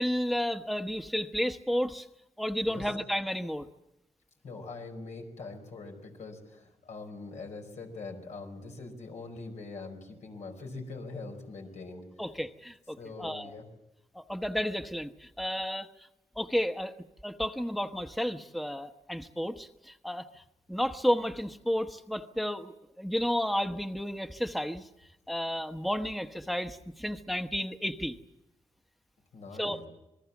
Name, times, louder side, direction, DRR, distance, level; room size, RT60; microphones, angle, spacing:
voice 1, 0.0-2.1 2.4-3.7 12.2-13.5 14.1-15.9 16.4-16.9 17.2-20.2 20.7-24.9 25.3-28.2 29.6-29.8, equal, ahead, 8 dB, 1.0 m, -32 dB
voice 2, 2.6-3.0 4.4-12.0 13.0-13.7 29.3-29.9, left 3 dB, 90° left, 3 dB, 5.2 m, -43 dB
27.5 x 21.0 x 7.2 m, 0.93 s
wide cardioid pair, 100°, 12 cm